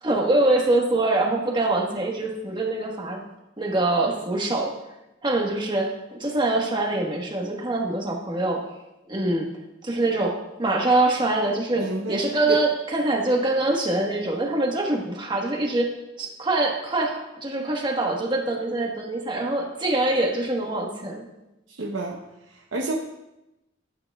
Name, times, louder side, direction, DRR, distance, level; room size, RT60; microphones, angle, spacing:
voice 1, 0.0-3.2 3.6-4.7 5.2-8.6 9.1-9.5 9.8-21.2, right 2 dB, 25° right, 0 dB, 1.4 m, -24 dB
voice 2, 11.7-12.2 12.5-12.6 21.7-22.2 22.5-22.9, right 2 dB, 75° right, -1 dB, 0.9 m, -29 dB
12.5 x 8.9 x 2.4 m, 0.93 s
head